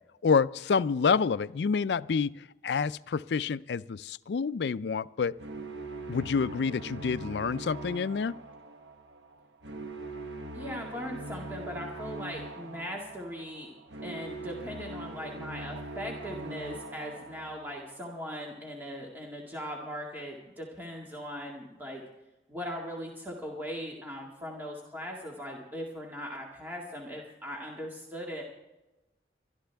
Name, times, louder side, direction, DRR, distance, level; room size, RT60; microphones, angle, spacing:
voice 1, 0.2-2.3 2.6-5.3 6.1-8.4, left 5 dB, 75° left, 17 dB, 0.4 m, -28 dB
sound 1, 5.4-18.5, right 2 dB, 80° right, 1.2 m, -42 dB
voice 2, 10.5-13.7 14.0-22.0 22.5-28.4, equal, 10° right, -2 dB, 2.0 m, -39 dB
23.0 x 12.5 x 3.5 m, 1.0 s
head